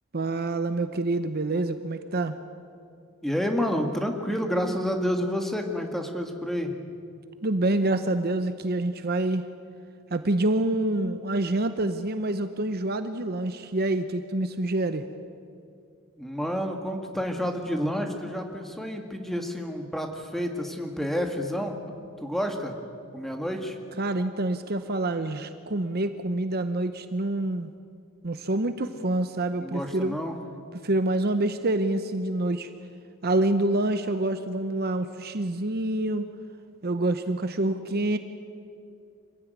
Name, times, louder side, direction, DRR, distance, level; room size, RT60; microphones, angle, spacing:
voice 1, 0.1-2.4 7.4-9.4 10.1-15.1 24.0-27.7 28.2-30.2 30.8-32.7 33.2-36.3 36.8-38.2, right 2 dB, 45° right, 9 dB, 0.8 m, -27 dB
voice 2, 3.2-6.7 16.2-21.8 22.2-22.7 23.1-23.8 29.6-30.4, equal, ahead, 4 dB, 1.8 m, -29 dB
25.5 x 16.0 x 9.5 m, 2.4 s
head